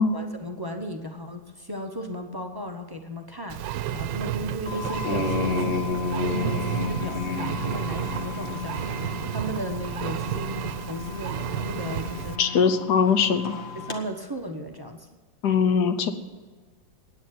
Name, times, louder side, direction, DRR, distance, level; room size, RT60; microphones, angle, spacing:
voice 1, 0.1-5.8 6.2-12.4 13.8-15.1, equal, 20° right, 4 dB, 0.5 m, -36 dB
Engine, 3.5-12.4, right 11 dB, 80° right, 1.3 m, -32 dB
sound 1, 4.7-14.0, left 4 dB, 40° left, 1.6 m, -32 dB
voice 2, 12.4-13.6 15.4-16.1, left 6 dB, 70° left, 9 dB, 1.4 m, -21 dB
9.5 x 9.4 x 9.2 m, 1.4 s
omnidirectional pair, 1.9 m